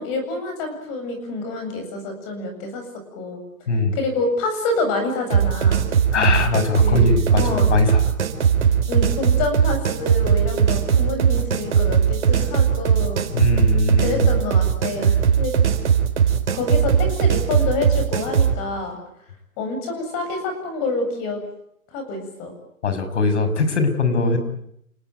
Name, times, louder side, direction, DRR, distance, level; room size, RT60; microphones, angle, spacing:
voice 1, 0.0-2.9 3.1-3.4 3.9-5.9 6.8-7.7 8.9-13.2 14.0-15.6 16.5-19.0 19.6-21.4 21.9-22.5 24.1-24.4, left 2 dB, 25° left, 6 dB, 7.9 m, -27 dB
voice 2, 3.7-4.0 6.1-8.1 13.3-14.3 22.8-24.4, left 3 dB, 55° left, 9 dB, 6.5 m, -21 dB
sound 1, 5.3-18.6, right 7 dB, 55° right, 4.7 m, -19 dB
29.5 x 18.0 x 9.4 m, 0.75 s
hypercardioid pair, 160°, 42 cm